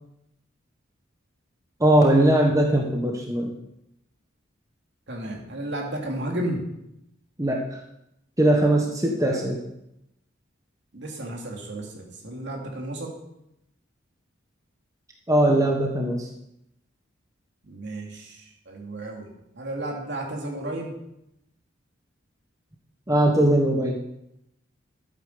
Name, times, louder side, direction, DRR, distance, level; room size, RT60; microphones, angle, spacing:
voice 1, 1.8-3.6 7.4-7.6 8.4-9.6 15.3-16.3 23.1-24.0, right 1 dB, 15° right, 1 dB, 1.3 m, -20 dB
voice 2, 5.1-6.7 9.2-9.5 10.9-13.1 17.6-20.9, right 1 dB, 60° right, 0 dB, 3.0 m, -33 dB
12.5 x 9.1 x 6.9 m, 0.83 s
head